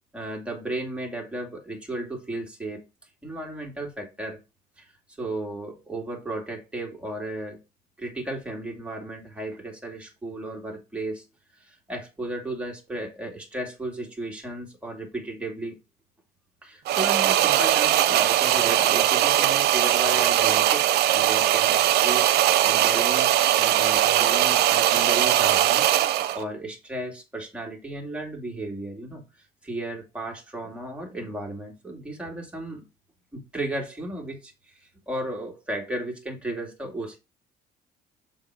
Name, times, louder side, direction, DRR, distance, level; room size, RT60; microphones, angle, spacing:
voice 1, 0.1-2.9 3.2-4.4 4.8-4.9 5.2-7.6 8.0-11.3 11.5-15.8 16.6-22.3 22.6-25.9 26.3-29.2 29.6-32.9 33.3-37.2, right 1 dB, 5° right, 2.3 m, -34 dB
sound 1, 16.9-26.4, right 12 dB, 70° right, 0.7 m, -20 dB
6.9 x 3.9 x 4.7 m
cardioid pair, 110°, 17 cm